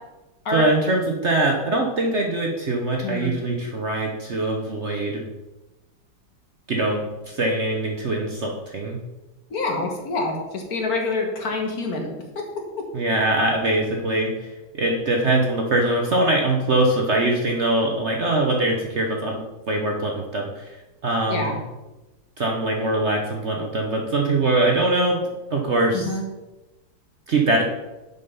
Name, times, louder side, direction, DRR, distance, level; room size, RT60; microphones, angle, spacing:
voice 1, 0.5-5.2 6.7-9.0 12.9-14.5 14.7-20.7 21.0-21.6 22.4-26.1 27.3-27.6, right 2 dB, 50° right, 1 dB, 1.0 m, -22 dB
voice 2, 9.5-12.1 21.3-21.5 25.9-26.2, left 3 dB, 55° left, 2 dB, 1.8 m, -26 dB
7.3 x 5.4 x 5.5 m, 1.1 s
omnidirectional pair, 1.9 m